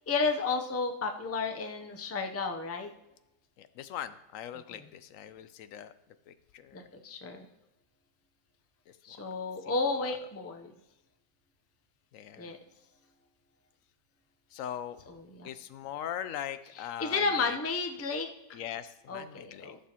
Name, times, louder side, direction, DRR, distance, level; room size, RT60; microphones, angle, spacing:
voice 1, 0.1-2.9 6.7-7.4 9.0-10.7 12.4-12.6 15.3-15.5 17.0-18.3 19.1-19.8, left 4 dB, 20° left, 5 dB, 0.4 m, -32 dB
voice 2, 3.6-5.9 6.3-6.9 8.9-9.2 9.6-10.1 12.1-12.5 14.5-15.0 15.4-17.6 18.5-19.7, left 10 dB, 80° left, 12 dB, 1.0 m, -41 dB
14.5 x 6.7 x 2.9 m, 0.98 s
omnidirectional pair, 1.4 m